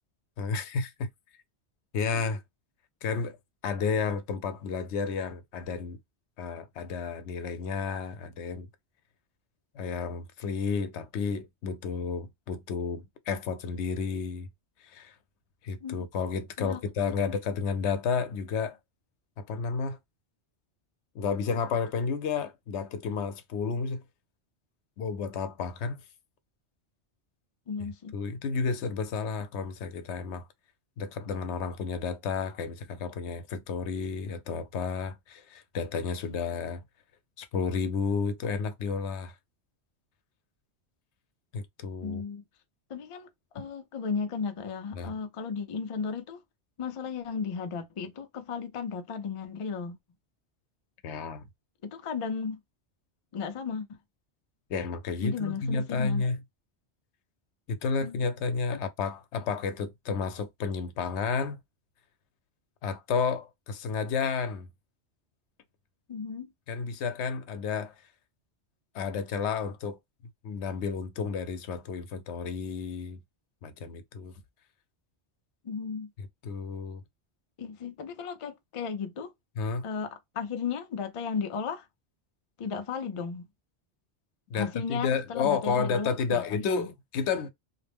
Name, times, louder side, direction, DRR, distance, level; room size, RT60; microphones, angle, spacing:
voice 1, 0.4-1.1 1.9-2.4 3.0-3.4 3.6-6.0 6.4-8.7 9.7-14.5 14.8-15.1 15.6-18.8 19.4-20.0 21.1-24.0 25.0-26.0 28.1-30.5 31.0-36.8 37.4-39.3 41.5-42.2 43.6-43.7 44.9-45.1 51.0-51.5 54.7-56.4 57.7-61.6 62.8-64.7 66.7-67.9 68.9-70.0 70.4-73.2 73.6-74.3 76.2-77.0 79.6-79.8 84.5-87.5, left 5 dB, 80° left, 0.9 m, -31 dB
voice 2, 27.7-28.1 42.0-42.4 42.9-43.3 43.5-46.4 46.8-50.0 51.8-52.6 53.3-54.0 55.2-56.2 58.0-58.3 58.7-58.8 66.1-66.5 75.6-76.1 77.6-79.3 79.8-81.9 82.6-83.5 84.5-86.9, left 5 dB, 50° left, 0.4 m, -35 dB
2.4 x 2.0 x 3.3 m
omnidirectional pair, 1.1 m